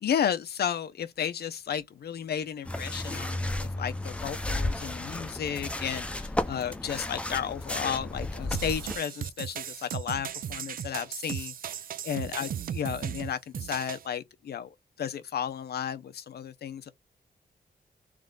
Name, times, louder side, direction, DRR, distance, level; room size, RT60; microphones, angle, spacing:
voice 1, 0.0-16.9, left 8 dB, 90° left, 0.7 m, -33 dB
sound 1, 2.6-9.0, left 1 dB, 5° left, 0.6 m, -33 dB
sound 2, 8.5-14.1, right 9 dB, 65° right, 0.4 m, -36 dB
3.6 x 3.2 x 3.8 m
wide cardioid pair, 125°, 16 cm